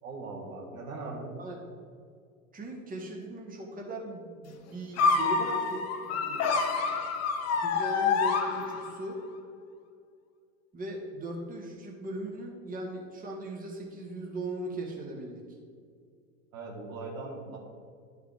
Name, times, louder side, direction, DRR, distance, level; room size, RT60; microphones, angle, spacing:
voice 1, 0.0-1.3 16.5-17.6, right 3 dB, 75° right, -1 dB, 1.8 m, -40 dB
voice 2, 2.5-7.1 7.5-9.2 10.7-15.4 16.9-17.2, right 1 dB, 20° right, -1 dB, 1.6 m, -39 dB
sound 1, 5.0-9.1, left 4 dB, 40° left, 0.9 m, -27 dB
11.0 x 5.0 x 3.5 m, 2.2 s
hypercardioid pair, 90°, 41 cm